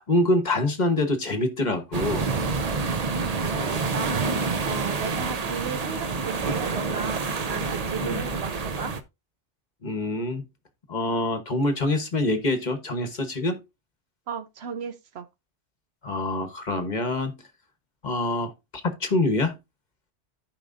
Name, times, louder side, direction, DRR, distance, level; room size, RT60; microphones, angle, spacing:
voice 1, 0.1-2.3 8.0-8.2 9.8-10.4 10.9-13.6 16.0-17.4 18.0-18.5 18.8-19.5, left 2 dB, 40° left, 1.1 m, -25 dB
sound 1, 1.9-9.0, right 4 dB, 40° right, 0.7 m, -28 dB
voice 2, 3.4-7.2 7.5-8.9 14.3-15.3, right 6 dB, 70° right, 1.0 m, -35 dB
14.5 x 4.9 x 2.5 m
omnidirectional pair, 1.2 m